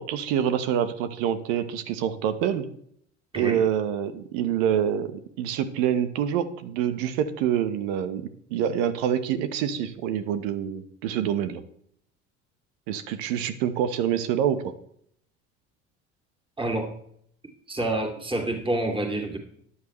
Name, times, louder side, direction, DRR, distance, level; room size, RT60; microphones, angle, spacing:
voice 1, 0.0-2.7 3.3-11.6 12.9-14.7, right 9 dB, 70° right, 11 dB, 1.2 m, -26 dB
voice 2, 16.6-16.9 17.7-19.4, right 2 dB, 15° right, 2 dB, 2.5 m, -27 dB
14.0 x 9.9 x 3.1 m, 0.67 s
hypercardioid pair, 70°, 35 cm